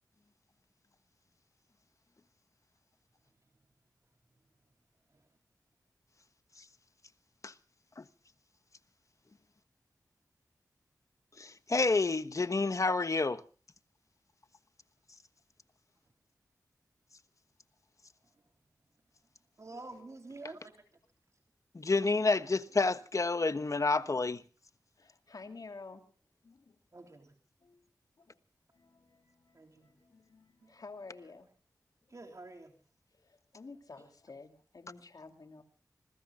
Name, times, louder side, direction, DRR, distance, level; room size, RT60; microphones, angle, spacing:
voice 1, 11.4-13.4 21.7-24.4, left 3 dB, 50° left, 1.2 m, -29 dB
voice 2, 19.6-20.7 26.9-27.3 29.5-29.9 30.6-30.7 32.1-32.7 34.0-34.1, right 2 dB, 50° right, 3.5 m, -48 dB
voice 3, 25.0-26.0 26.4-26.8 27.6-27.9 28.2-28.4 28.7-31.5 33.2-35.6, left 3 dB, 65° left, 3.0 m, -51 dB
26.5 x 21.5 x 2.4 m
cardioid pair, 50°, 7 cm